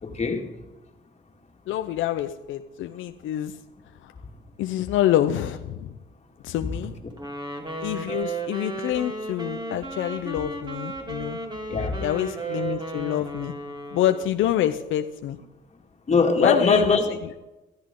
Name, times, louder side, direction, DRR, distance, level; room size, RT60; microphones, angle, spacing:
voice 1, 0.0-0.5 7.0-7.1 11.7-12.0 16.1-17.1, left 4 dB, 35° left, 2.2 m, -21 dB
voice 2, 1.7-3.5 4.0-4.1 4.6-5.9 6.4-6.9 7.8-11.4 12.0-13.5 13.9-15.4 16.4-17.3, left 12 dB, 85° left, 0.7 m, -26 dB
Wind instrument woodwind instrument, 7.2-14.4, right 3 dB, 20° right, 3.0 m, -34 dB
14.0 x 14.0 x 3.8 m
cardioid pair, 90°, 20 cm